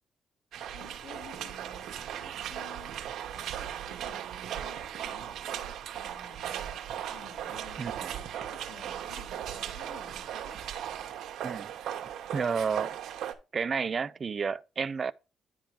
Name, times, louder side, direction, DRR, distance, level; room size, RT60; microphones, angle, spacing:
sound 1, 0.5-13.3, right 10 dB, 75° right, 1.0 m, -37 dB
voice 1, 0.7-2.9 3.3-10.6, left 7 dB, 65° left, 2.6 m, -54 dB
voice 2, 12.3-13.0 13.5-15.1, right 5 dB, 40° right, 0.3 m, -30 dB
10.0 x 3.7 x 4.6 m
cardioid pair, 90°, 0 cm